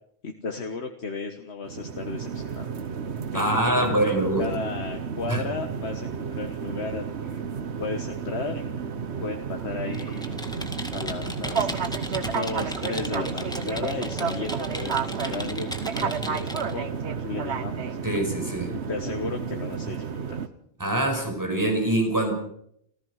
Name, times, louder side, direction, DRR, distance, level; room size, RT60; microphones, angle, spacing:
voice 1, 0.2-2.7 3.3-7.4 7.8-8.6 9.2-10.5 10.9-11.7 12.3-18.0 18.9-20.4, left 4 dB, 80° left, 4 dB, 1.7 m, -34 dB
sound 1, 1.6-20.5, right 6 dB, 80° right, 1.4 m, -31 dB
voice 2, 3.3-4.5 5.3-5.4 18.0-18.7 20.8-22.3, right 1 dB, 15° right, 3 dB, 5.6 m, -24 dB
Computer keyboard, 9.9-16.7, equal, 5° left, 1.9 m, -36 dB
27.5 x 15.5 x 6.5 m, 0.73 s
omnidirectional pair, 1.1 m